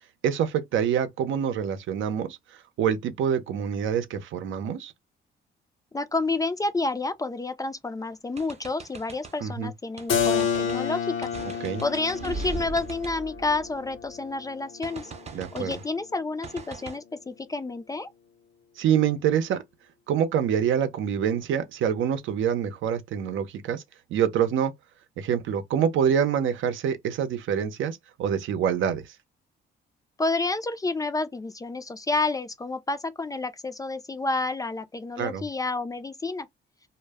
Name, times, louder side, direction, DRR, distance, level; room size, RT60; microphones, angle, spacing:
voice 1, 0.2-2.4 2.8-4.9 9.4-9.7 11.6-11.8 15.3-15.8 18.8-19.6 20.1-23.8 24.1-24.7 25.2-29.0 35.2-35.4, right 8 dB, 80° right, 0.7 m, -26 dB
voice 2, 5.9-11.3 11.6-15.1 15.5-18.1 30.2-36.5, left 3 dB, 15° left, 0.4 m, -29 dB
sound 1, 8.4-9.4 10.0-10.8 11.2-14.1 14.8-15.9 16.4-17.0, right 4 dB, 35° right, 0.6 m, -39 dB
Keyboard (musical), 10.1-15.7, left 7 dB, 85° left, 0.7 m, -30 dB
2.1 x 2.1 x 3.3 m
cardioid pair, 90°, 20 cm